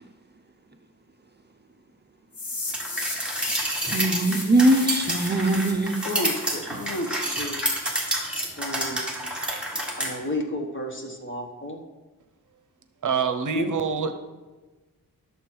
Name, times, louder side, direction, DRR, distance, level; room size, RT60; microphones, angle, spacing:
sound 1, 2.3-8.3, left 2 dB, 75° left, 3.2 m, -36 dB
sound 2, 2.7-10.1, right 1 dB, 5° right, 1.8 m, -29 dB
voice 1, 3.9-6.0, right 1 dB, 30° right, 4 dB, 0.7 m, -21 dB
voice 2, 6.0-7.6 8.3-9.1 10.0-11.8 13.5-13.7, left 1 dB, 35° left, 3 dB, 1.3 m, -32 dB
voice 3, 13.0-14.1, right 6 dB, 60° right, 9 dB, 0.8 m, -25 dB
11.0 x 7.0 x 4.6 m, 1.2 s
wide cardioid pair, 140°, 35 cm